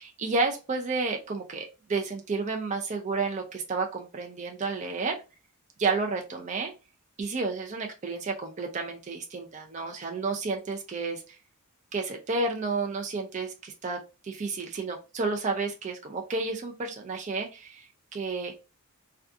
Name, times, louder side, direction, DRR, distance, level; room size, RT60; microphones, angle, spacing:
voice 1, 0.0-5.2 5.8-6.7 7.2-11.4 11.9-14.0 14.2-17.9 18.1-18.5, right 3 dB, 35° right, 2 dB, 0.4 m, -31 dB
2.4 x 2.3 x 2.5 m, 0.29 s
head